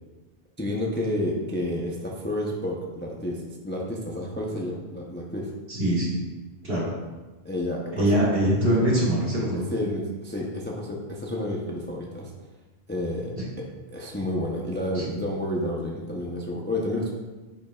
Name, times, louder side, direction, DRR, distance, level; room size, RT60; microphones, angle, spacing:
voice 1, 0.6-5.5 7.4-8.2 9.5-12.3 12.9-17.1, left 1 dB, 10° left, -2 dB, 0.6 m, -30 dB
voice 2, 5.7-6.2 6.6-6.9 7.9-9.6 13.4-13.5 14.9-15.1, right 1 dB, 55° right, -7 dB, 2.1 m, -23 dB
8.8 x 5.3 x 2.4 m, 1.2 s
omnidirectional pair, 1.2 m